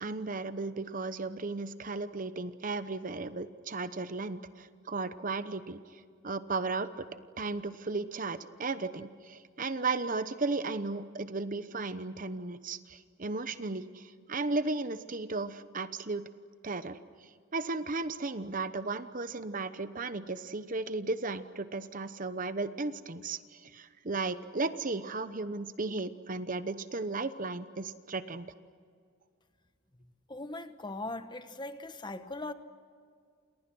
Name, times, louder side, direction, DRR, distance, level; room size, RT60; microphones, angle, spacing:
voice 1, 0.0-6.9 7.4-16.2 16.6-28.5, right 3 dB, 40° right, 12 dB, 0.9 m, -35 dB
voice 2, 30.3-32.5, left 2 dB, 20° left, 10 dB, 1.2 m, -39 dB
29.5 x 28.5 x 6.3 m, 2.1 s
head